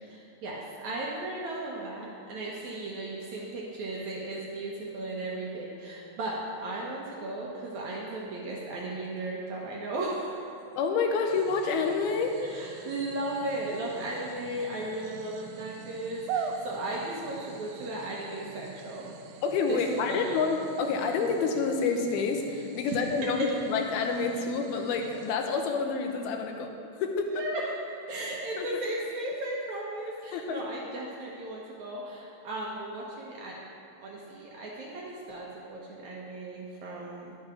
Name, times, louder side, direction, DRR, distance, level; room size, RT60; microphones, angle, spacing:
voice 1, 0.0-10.6 12.4-19.2 19.7-20.4 22.9-23.5 27.3-27.7 28.1-33.6 34.0-37.4, right 2 dB, 65° right, -3 dB, 2.0 m, -36 dB
voice 2, 10.8-12.3 19.4-26.7 27.0-27.3 28.6-28.7 30.3-30.6, left 5 dB, 80° left, 3 dB, 2.7 m, -28 dB
sound 1, 11.3-25.3, right 6 dB, 85° right, 2.1 m, -43 dB
11.0 x 8.7 x 5.0 m, 2.6 s
omnidirectional pair, 4.4 m